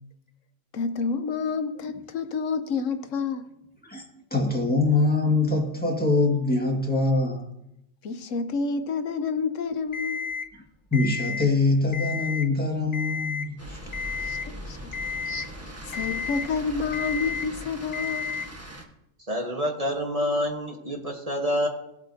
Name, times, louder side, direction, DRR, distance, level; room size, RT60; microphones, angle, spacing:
voice 1, 0.7-3.5 8.0-10.3 14.2-14.8 15.9-18.4, left 5 dB, 80° left, 1.1 m, -29 dB
voice 2, 4.3-7.5 10.9-13.8, left 3 dB, 5° left, 1.8 m, -23 dB
Alarm, 9.9-10.5 10.9-11.5 11.9-12.5 12.9-13.5 13.9-14.5 14.9-15.5 15.9-16.5 16.9-17.5 17.9-18.5, left 5 dB, 45° left, 0.9 m, -32 dB
sound 1, 13.6-18.8, equal, 10° right, 1.2 m, -40 dB
voice 3, 19.3-21.7, equal, 30° right, 1.3 m, -27 dB
18.0 x 8.2 x 2.8 m
omnidirectional pair, 1.3 m